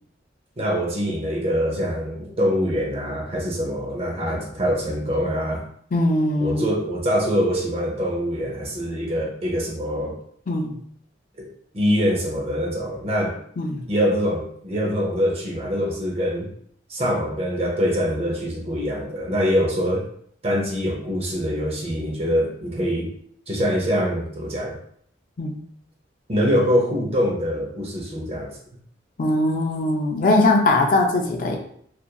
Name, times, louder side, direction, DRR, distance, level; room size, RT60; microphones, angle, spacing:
voice 1, 0.6-5.6 6.4-10.2 11.4-11.5 11.7-13.3 13.9-16.5 16.9-20.1 20.4-23.1 23.5-24.8 26.3-28.5, equal, 30° right, -1 dB, 0.6 m, -24 dB
voice 2, 5.9-6.6 10.5-10.7 13.6-13.8 25.4-25.6 29.2-31.6, left 2 dB, 45° left, 2 dB, 0.4 m, -20 dB
2.8 x 2.4 x 2.2 m, 0.65 s
head